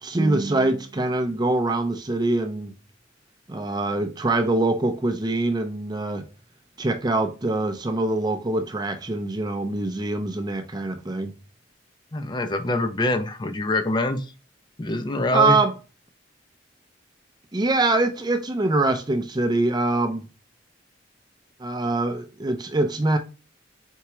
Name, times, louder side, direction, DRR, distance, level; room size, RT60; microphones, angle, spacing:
voice 1, 0.0-2.7 3.5-6.3 6.8-11.3 15.3-15.7 17.5-20.2 21.6-23.2, right 2 dB, 20° right, 0.6 m, -24 dB
voice 2, 12.1-14.3 14.8-15.7, left 2 dB, 25° left, 0.5 m, -25 dB
4.5 x 3.5 x 3.0 m
head